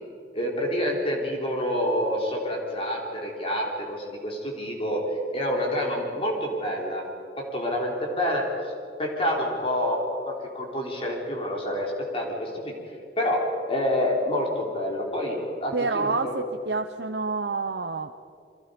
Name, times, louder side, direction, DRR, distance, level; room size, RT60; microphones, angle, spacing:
voice 1, 0.3-5.0 5.3-7.1 7.4-8.7 9.0-12.7 13.2-16.4, left 1 dB, 30° left, -1 dB, 4.0 m, -28 dB
voice 2, 15.7-18.1, right 3 dB, 70° right, 5 dB, 0.9 m, -28 dB
29.5 x 24.0 x 5.3 m, 2.4 s
head